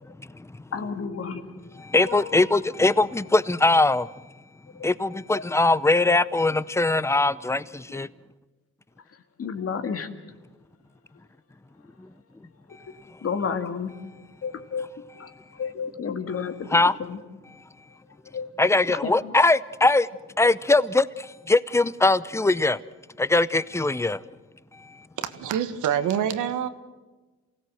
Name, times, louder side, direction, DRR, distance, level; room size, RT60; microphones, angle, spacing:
voice 1, 0.7-1.4 2.1-2.5 4.7-4.9 5.3-5.4 7.9-8.0 9.1-10.1 12.7-12.8 13.2-13.9 14.4-17.2 18.1-19.3, left 6 dB, 50° left, 2.1 m, -32 dB
voice 2, 1.8-4.1 4.8-8.1 16.7-16.9 18.6-20.1 20.4-22.8 23.2-24.2, left 2 dB, 10° left, 0.6 m, -21 dB
voice 3, 25.2-26.7, right 9 dB, 80° right, 1.5 m, -26 dB
28.0 x 17.0 x 7.8 m
cardioid pair, 90°, 30 cm